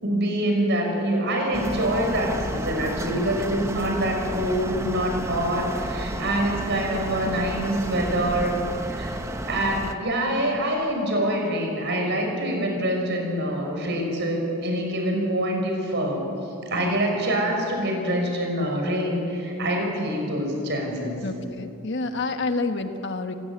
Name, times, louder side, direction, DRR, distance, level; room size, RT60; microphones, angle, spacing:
voice 1, 0.0-9.2 9.5-16.2 16.7-21.3, right 1 dB, 50° right, 2 dB, 5.8 m, -25 dB
sound 1, 1.5-9.9, right 1 dB, 15° right, 0.9 m, -32 dB
voice 2, 21.2-23.3, left 3 dB, 55° left, 6 dB, 1.3 m, -28 dB
28.0 x 15.5 x 9.8 m, 2.8 s
head